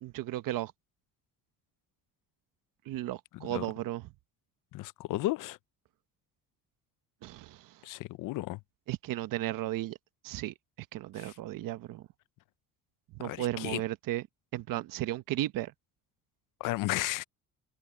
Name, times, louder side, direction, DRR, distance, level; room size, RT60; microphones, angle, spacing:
voice 1, 0.0-0.7 2.9-4.0 7.2-7.8 8.9-10.0 10.2-12.1 13.2-14.2 14.5-15.7, right 14 dB, 75° right, 1.1 m, -35 dB
voice 2, 3.3-3.7 4.7-5.6 7.8-8.6 11.2-11.3 13.2-13.8 16.6-17.2, left 17 dB, 70° left, 0.6 m, -34 dB
cardioid pair, 125°, 33 cm